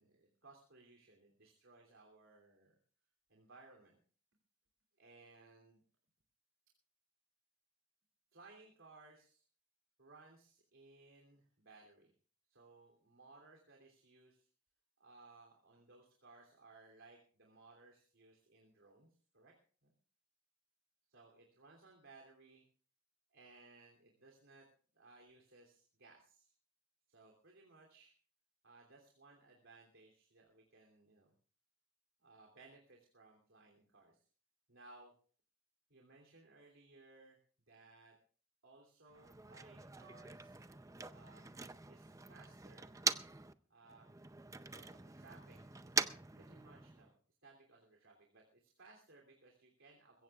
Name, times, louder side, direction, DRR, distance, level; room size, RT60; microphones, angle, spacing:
voice 1, 0.0-2.8 3.3-4.0 5.0-5.8 8.3-9.4 10.0-12.1 12.5-14.5 15.0-19.1 19.3-19.5 19.8-19.9 21.1-22.6 23.3-24.7 24.9-26.5 27.1-28.1 28.6-31.3 32.2-34.2 34.7-35.1 35.9-37.4 37.7-38.1 38.6-40.7 41.1-41.5 41.9-42.9 43.7-44.1 44.5-45.6 45.9-47.1 47.4-50.2, right 3 dB, 85° right, 0 dB, 3.0 m, -62 dB
Motor vehicle (road), 39.1-43.5 43.8-47.1, right 4 dB, 15° right, 0.5 m, -43 dB
22.0 x 16.5 x 2.4 m, 0.43 s
head